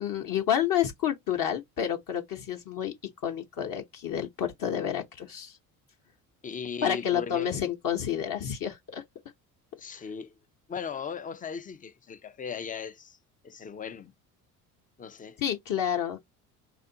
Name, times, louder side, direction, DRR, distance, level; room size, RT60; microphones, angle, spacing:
voice 1, 0.0-2.9 3.2-5.6 6.8-9.0 9.9-10.0 15.4-16.2, left 9 dB, 50° left, 0.8 m, -29 dB
voice 2, 6.4-7.5 9.8-10.3 10.7-13.2 13.4-14.1 15.0-15.4, left 6 dB, 20° left, 0.4 m, -37 dB
3.5 x 2.5 x 2.6 m
hypercardioid pair, 65°, 44 cm